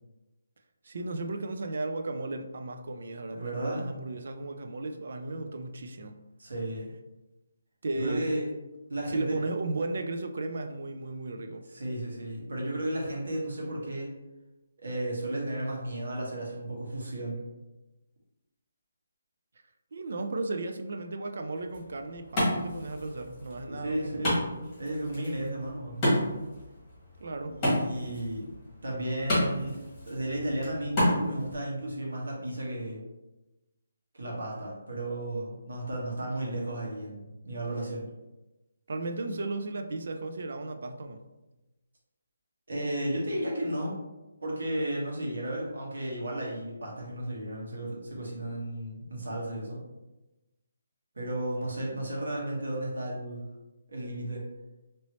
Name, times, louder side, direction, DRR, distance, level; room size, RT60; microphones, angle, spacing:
voice 1, 0.8-6.2 7.8-8.3 9.1-11.6 19.9-24.4 27.2-27.6 38.9-41.2, right 2 dB, 50° right, 6 dB, 0.4 m, -35 dB
voice 2, 3.3-3.9 6.4-6.9 8.0-8.5 8.9-9.4 11.7-14.1 14.8-17.4 23.7-24.4 24.8-26.0 27.5-28.5 28.8-29.8 30.1-33.0 34.1-38.1 42.7-44.0 44.4-49.8 51.1-53.4 53.9-54.4, right 1 dB, 85° right, -3 dB, 1.4 m, -33 dB
Wood, 21.5-31.5, equal, 10° left, 1.4 m, -32 dB
2.9 x 2.9 x 2.9 m, 1.0 s
hypercardioid pair, 175°, 0 cm